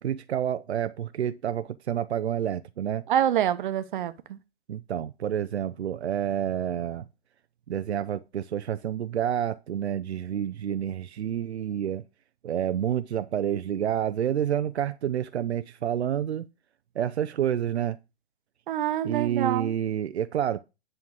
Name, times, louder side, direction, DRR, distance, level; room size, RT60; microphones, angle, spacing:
voice 1, 0.0-3.1 4.7-7.1 7.7-12.0 12.4-16.5 17.0-18.0 19.0-20.6, right 10 dB, 75° right, 0.6 m, -29 dB
voice 2, 3.1-4.4 18.7-19.8, right 11 dB, 50° right, 1.0 m, -26 dB
9.8 x 5.7 x 4.9 m
hypercardioid pair, 140°, 33 cm